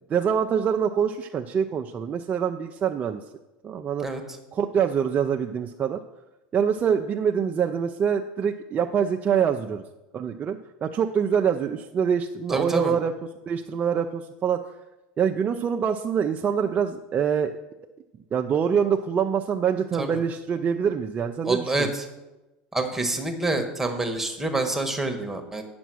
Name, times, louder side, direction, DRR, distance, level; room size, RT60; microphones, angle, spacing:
voice 1, 0.1-3.2 3.6-4.1 4.5-6.0 6.5-9.8 10.1-13.1 13.5-14.6 15.2-17.5 18.3-21.9, right 7 dB, 35° right, 4 dB, 0.6 m, -25 dB
voice 2, 12.5-12.9 20.0-20.2 21.4-21.9 22.7-25.6, right 2 dB, 5° right, 4 dB, 1.6 m, -27 dB
9.1 x 6.1 x 6.2 m, 1.0 s
supercardioid pair, 105°, 5 cm